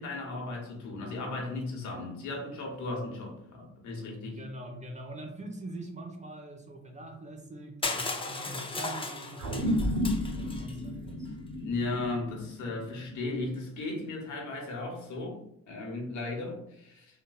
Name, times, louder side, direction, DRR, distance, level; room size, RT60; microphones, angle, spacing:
voice 1, 0.0-4.4 11.6-17.2, left 2 dB, 75° left, 0 dB, 1.1 m, -36 dB
voice 2, 4.2-10.0 10.3-11.3, right 1 dB, 25° right, 3 dB, 0.6 m, -43 dB
Crushing, 7.8-10.8, left 3 dB, 20° left, 0.5 m, -36 dB
sound 1, 9.4-14.1, left 1 dB, 85° right, 0.9 m, -33 dB
3.7 x 2.6 x 2.3 m, 0.76 s
cardioid pair, 90°, 30 cm